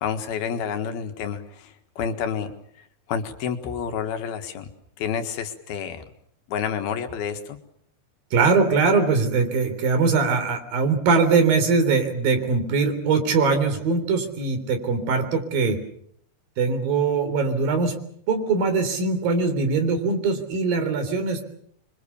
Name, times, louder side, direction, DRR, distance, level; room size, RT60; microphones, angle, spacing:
voice 1, 0.0-2.5 3.1-4.7 5.0-6.0 6.5-7.6, left 7 dB, 80° left, 8 dB, 3.6 m, -29 dB
voice 2, 8.3-15.8 16.6-18.0 18.3-21.5, right 4 dB, 65° right, 8 dB, 5.3 m, -21 dB
27.0 x 24.0 x 7.0 m, 0.67 s
omnidirectional pair, 4.4 m